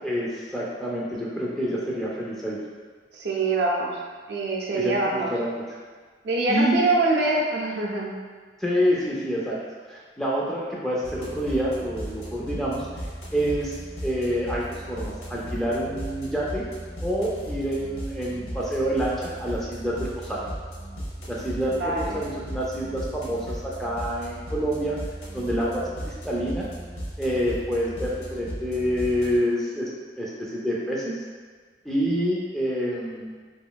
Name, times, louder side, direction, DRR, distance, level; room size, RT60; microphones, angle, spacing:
voice 1, 0.0-2.6 4.7-5.6 6.5-6.8 8.6-9.6 9.9-13.1 13.3-16.7 17.0-20.5 21.3-25.0 25.3-26.7 27.2-29.9 30.2-31.1 31.8-33.3, equal, ahead, -6 dB, 0.3 m, -27 dB
voice 2, 3.1-4.0 4.3-5.3 6.2-8.2 21.6-22.2, right 2 dB, 65° right, -2 dB, 0.4 m, -24 dB
sound 1, 11.0-29.4, equal, 80° left, 0.8 m, -36 dB
2.9 x 2.5 x 2.2 m, 1.5 s
head